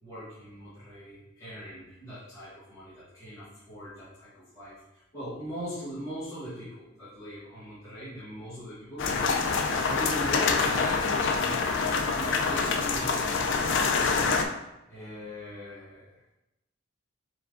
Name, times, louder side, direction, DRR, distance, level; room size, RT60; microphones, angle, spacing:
voice 1, 0.0-4.8 5.1-14.1 14.9-16.1, equal, 15° left, -13 dB, 1.3 m, -41 dB
sound 1, 9.0-14.4, left 4 dB, 55° left, 0.4 m, -26 dB
4.4 x 3.4 x 2.6 m, 0.93 s
head